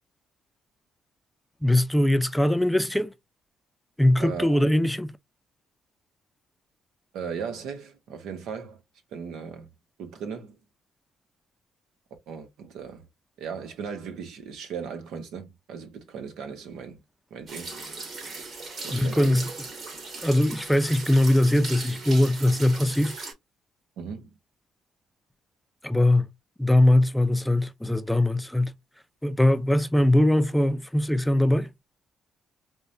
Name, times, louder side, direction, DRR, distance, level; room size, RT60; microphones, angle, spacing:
voice 1, 1.6-3.1 4.0-5.2 18.9-19.5 20.2-23.2 25.8-26.3 26.6-28.7 29.2-31.7, left 1 dB, 5° left, 0.5 m, -21 dB
voice 2, 4.2-4.6 7.1-8.8 9.1-9.7 10.0-10.6 12.3-13.1 13.4-17.0 17.3-17.8 18.8-19.3 24.0-24.3, right 6 dB, 85° right, 1.0 m, -37 dB
sound 1, 17.5-23.3, right 3 dB, 55° right, 2.7 m, -38 dB
4.6 x 2.2 x 2.7 m
cardioid pair, 90°, 0 cm